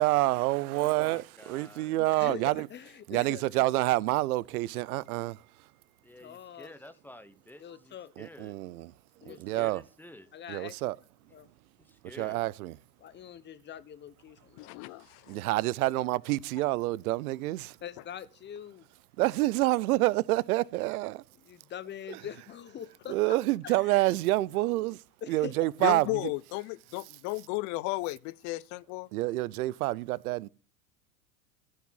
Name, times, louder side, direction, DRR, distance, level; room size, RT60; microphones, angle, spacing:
voice 1, 0.0-2.7 3.1-5.4 8.2-8.9 9.3-9.8 10.5-10.9 12.2-12.7 15.3-17.7 19.2-21.2 22.1-22.2 23.1-25.0 25.3-26.1 29.1-30.5, right 18 dB, 65° right, 0.7 m, -28 dB
voice 2, 0.7-2.0 6.0-8.5 9.2-10.3 11.8-12.4, left 1 dB, 5° left, 1.1 m, -50 dB
voice 3, 2.2-3.4 6.2-6.7 7.6-8.1 9.2-9.7 10.3-10.8 11.3-11.5 13.0-14.8 17.8-18.9 21.4-23.4 23.6-24.7 25.2-25.7, left 9 dB, 20° left, 0.9 m, -44 dB
voice 4, 14.6-15.4 25.8-29.1, left 21 dB, 40° left, 0.5 m, -34 dB
15.0 x 5.8 x 5.7 m
hypercardioid pair, 90°, 48 cm